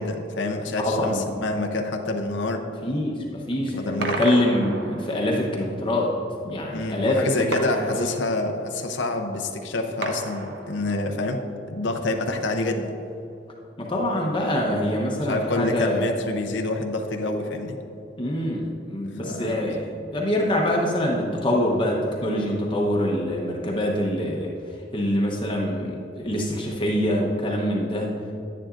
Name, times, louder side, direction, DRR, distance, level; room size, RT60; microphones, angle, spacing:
voice 1, 0.0-2.6 3.8-4.2 6.7-11.4 11.7-12.9 15.3-17.8 19.2-19.6, left 2 dB, 80° left, 4 dB, 0.7 m, -27 dB
voice 2, 0.8-1.3 2.8-6.1 6.4-7.5 7.9-8.1 13.8-16.1 18.2-24.5 24.9-28.1, left 1 dB, 30° left, -2 dB, 0.9 m, -25 dB
sound 1, 4.0-5.4 7.5-8.7 10.0-11.2, right 2 dB, 65° right, 0.8 m, -33 dB
10.5 x 9.9 x 2.5 m, 2.9 s
head